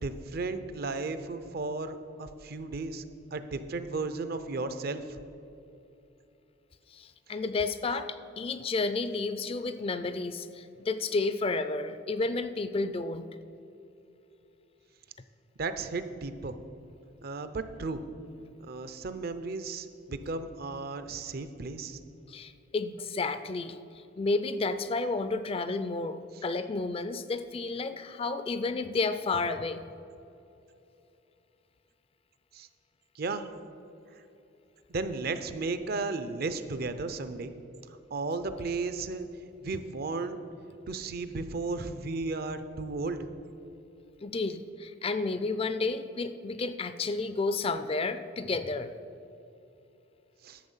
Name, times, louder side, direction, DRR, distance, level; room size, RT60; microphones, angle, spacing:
voice 1, 0.0-3.0 3.3-5.2 15.6-16.6 17.2-18.1 18.6-22.0 26.3-26.4 32.5-32.7 33.1-33.5 34.9-37.5 37.9-39.3 39.6-40.4 40.9-43.3 50.4-50.6, right 3 dB, 55° right, 11 dB, 0.6 m, -34 dB
voice 2, 6.9-13.3 22.3-23.8 24.2-29.8 44.2-48.9, left 3 dB, 30° left, 11 dB, 0.4 m, -31 dB
11.5 x 7.3 x 5.6 m, 2.8 s
head